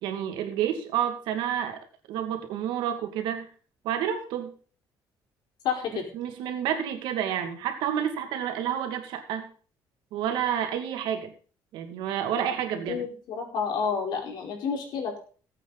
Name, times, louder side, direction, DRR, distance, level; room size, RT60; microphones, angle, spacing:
voice 1, 0.0-1.8 2.1-3.5 3.8-4.5 6.1-9.5 10.1-11.3 11.7-13.1, right 9 dB, 90° right, 6 dB, 2.4 m, -29 dB
voice 2, 5.6-6.0 12.7-15.2, left 6 dB, 70° left, 1 dB, 4.9 m, -30 dB
18.5 x 8.4 x 4.1 m, 0.41 s
cardioid pair, 125°, 8 cm